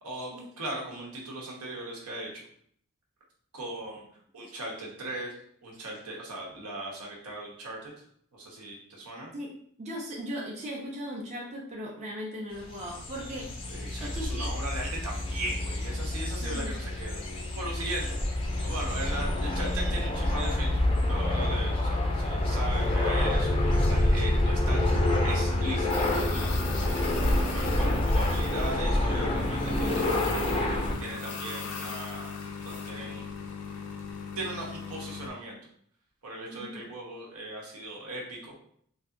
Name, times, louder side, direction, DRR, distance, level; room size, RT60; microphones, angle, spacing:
voice 1, 0.0-2.4 3.5-4.0 4.3-7.9 8.3-9.3 13.7-18.2 18.6-24.9 25.2-27.0 27.5-30.2 31.0-32.3 32.6-33.3 34.4-35.6 36.2-38.5, right 2 dB, 80° right, -2 dB, 1.0 m, -38 dB
voice 2, 9.8-13.5 14.0-14.5 16.4-16.7 36.5-36.8, equal, 30° right, -3 dB, 0.6 m, -38 dB
sound 1, 12.6-30.9, left 1 dB, 25° left, 0.4 m, -27 dB
sound 2, 22.7-35.3, left 5 dB, 80° left, 0.5 m, -39 dB
3.3 x 2.7 x 2.6 m, 0.63 s
head